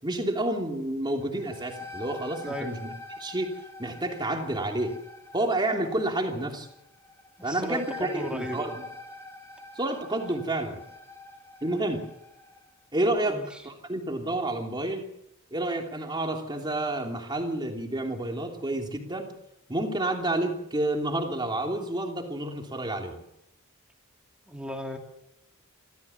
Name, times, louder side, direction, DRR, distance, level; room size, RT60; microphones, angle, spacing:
voice 1, 0.0-2.9 3.2-5.0 5.3-6.7 7.4-8.8 9.7-10.8 11.6-12.1 12.9-13.4 13.6-15.0 15.5-19.3 19.7-23.2, right 1 dB, 20° right, 2 dB, 3.1 m, -29 dB
sound 1, 1.2-12.7, left 3 dB, 15° left, 2.6 m, -45 dB
voice 2, 2.4-2.8 7.4-8.7 13.2-13.6 24.5-25.0, equal, 5° right, 2 dB, 2.7 m, -36 dB
26.5 x 14.5 x 7.2 m, 0.81 s
head